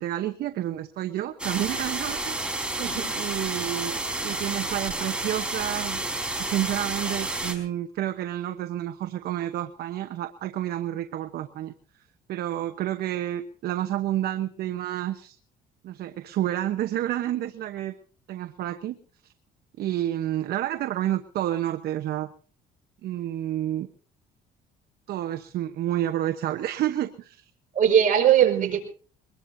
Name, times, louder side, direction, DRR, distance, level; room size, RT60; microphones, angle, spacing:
voice 1, 0.0-2.7 3.1-6.0 6.4-11.7 12.3-15.4 15.8-17.9 18.3-19.0 19.2-19.3 19.8-22.3 23.0-23.9 25.1-27.5 28.4-28.8, right 12 dB, 70° right, 7 dB, 1.1 m, -30 dB
sound 1, 1.4-7.5, right 2 dB, 5° right, 4.4 m, -30 dB
voice 2, 2.8-3.1 27.7-28.8, right 9 dB, 50° right, 2 dB, 5.4 m, -20 dB
23.0 x 21.0 x 2.8 m, 0.40 s
cardioid pair, 110°, 17 cm